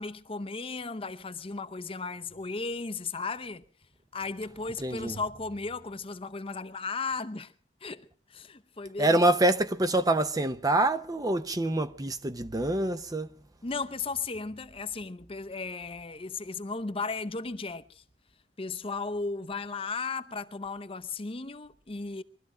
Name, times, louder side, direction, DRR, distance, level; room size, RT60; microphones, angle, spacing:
voice 1, 0.0-3.6 4.1-7.5 7.8-9.2 13.6-18.0 18.6-22.2, left 4 dB, 30° left, 0.7 m, -35 dB
voice 2, 4.8-5.2 9.0-13.3, right 1 dB, 20° right, 0.7 m, -26 dB
22.5 x 13.0 x 4.9 m
head